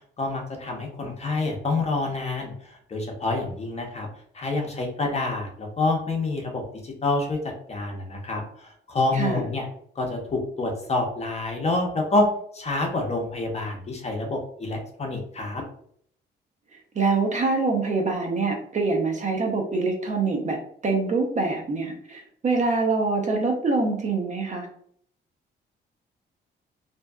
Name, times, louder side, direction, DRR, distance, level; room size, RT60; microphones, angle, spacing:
voice 1, 0.2-4.1 4.3-7.4 7.7-9.7 10.0-12.3 12.5-15.6, left 2 dB, 35° left, 1 dB, 0.7 m, -27 dB
voice 2, 9.1-9.4 16.9-24.7, right 3 dB, 40° right, 2 dB, 0.6 m, -25 dB
2.6 x 2.2 x 2.3 m, 0.63 s
cardioid pair, 90°, 20 cm